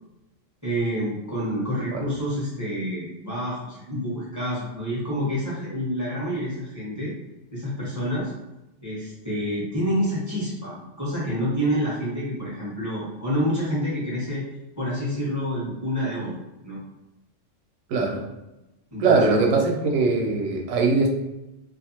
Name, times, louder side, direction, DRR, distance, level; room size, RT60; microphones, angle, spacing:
voice 1, 0.6-7.1 7.5-8.3 8.8-14.4 14.8-16.4 16.6-16.8 18.9-19.3, equal, 15° left, -7 dB, 0.9 m, -28 dB
voice 2, 17.9-18.2 19.0-21.1, right 3 dB, 90° right, 1 dB, 1.0 m, -21 dB
2.6 x 2.3 x 2.9 m, 0.96 s
omnidirectional pair, 1.4 m